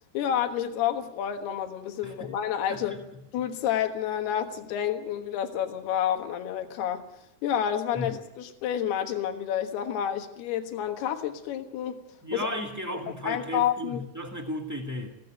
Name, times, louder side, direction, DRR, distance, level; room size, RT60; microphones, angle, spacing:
voice 1, 0.1-2.9 3.3-7.0 7.4-12.0 12.3-12.5 13.3-14.0, left 10 dB, 80° left, 6 dB, 3.5 m, -29 dB
voice 2, 2.0-2.4 2.7-3.0 7.9-8.2 12.2-15.2, equal, 30° right, 2 dB, 0.3 m, -35 dB
21.5 x 17.0 x 9.0 m, 0.86 s
omnidirectional pair, 4.5 m